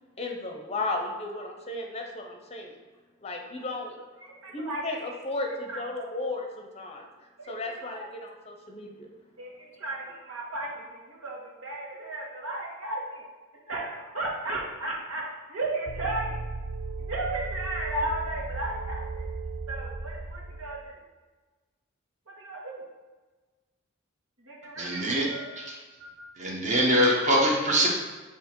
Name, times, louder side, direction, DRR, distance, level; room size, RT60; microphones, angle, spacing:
voice 1, 0.2-2.8 3.2-3.9 4.5-7.1 7.5-9.1, left 2 dB, 30° left, 2 dB, 0.6 m, -34 dB
voice 2, 4.4-4.8 5.7-6.1 7.4-8.1 9.4-13.2 13.7-15.2 15.5-16.4 17.0-19.3 19.7-20.9 22.4-22.8 24.4-25.5, right 2 dB, 85° right, -3 dB, 1.5 m, -34 dB
sound 1, 15.9-20.8, right 3 dB, 60° right, 0.4 m, -36 dB
voice 3, 24.8-27.9, equal, 35° right, -3 dB, 1.2 m, -25 dB
7.9 x 2.9 x 4.5 m, 1.3 s
head